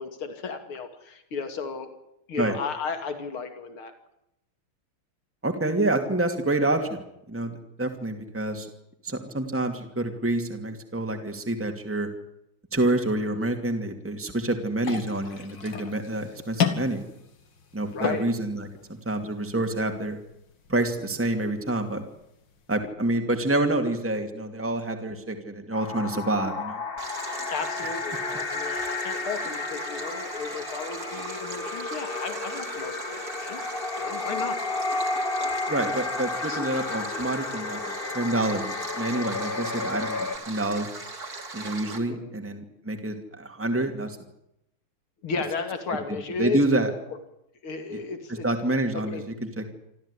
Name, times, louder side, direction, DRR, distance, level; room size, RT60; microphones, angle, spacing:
voice 1, 0.0-1.9 2.3-3.9 17.8-18.4 27.5-33.6 34.0-34.6 36.5-36.7 42.1-42.3 45.2-46.6 47.6-48.5 49.1-49.2, left 5 dB, 80° left, 7 dB, 3.3 m, -34 dB
voice 2, 5.4-7.0 7.3-8.7 9.0-12.1 12.7-17.0 17.7-18.7 19.1-20.2 20.7-22.0 22.7-26.8 35.7-37.8 38.1-40.9 41.5-44.2 46.4-46.9 47.9-48.0 48.4-49.2 49.6-49.7, right 2 dB, 5° right, 5 dB, 2.5 m, -27 dB
sound 1, 14.8-22.8, left 6 dB, 60° left, 2.7 m, -35 dB
sound 2, 25.7-40.4, left 3 dB, 30° left, 1.4 m, -32 dB
Stream, 27.0-42.0, right 3 dB, 45° right, 3.6 m, -39 dB
27.0 x 14.0 x 10.0 m, 0.82 s
omnidirectional pair, 2.3 m